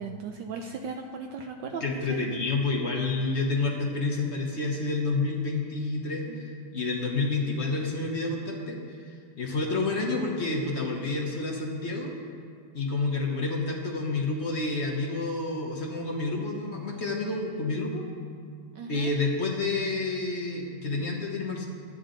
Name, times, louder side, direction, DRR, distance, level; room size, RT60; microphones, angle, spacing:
voice 1, 0.0-1.8 2.1-2.2 6.3-6.4 18.7-19.1, right 5 dB, 75° right, 3 dB, 1.1 m, -37 dB
voice 2, 1.8-8.8 9.1-12.2 12.7-18.0 18.9-21.7, left 3 dB, 45° left, 0 dB, 0.9 m, -29 dB
12.5 x 9.3 x 3.8 m, 2.1 s
omnidirectional pair, 2.3 m